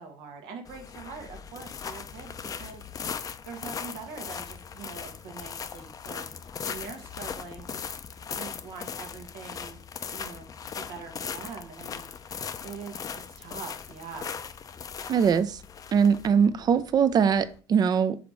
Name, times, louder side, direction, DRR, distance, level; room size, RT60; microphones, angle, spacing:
voice 1, 0.0-7.8 8.3-9.8 10.1-14.4, right 5 dB, 85° right, 1.3 m, -44 dB
sound 1, 0.7-17.6, left 7 dB, 40° left, 0.5 m, -39 dB
voice 2, 15.1-15.6 15.9-18.2, right 7 dB, 45° right, 0.5 m, -22 dB
5.0 x 4.0 x 4.7 m
supercardioid pair, 85°, 9 cm